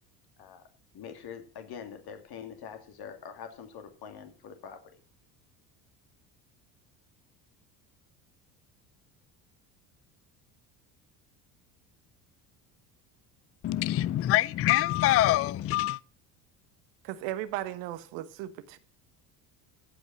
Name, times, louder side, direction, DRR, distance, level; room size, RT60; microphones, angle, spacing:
voice 1, 0.9-5.0, left 7 dB, 50° left, 2.6 m, -44 dB
voice 2, 13.6-16.0, left 14 dB, 30° left, 0.4 m, -25 dB
voice 3, 17.0-18.8, right 13 dB, 70° right, 1.4 m, -36 dB
14.5 x 5.3 x 7.3 m
hypercardioid pair, 70°, 47 cm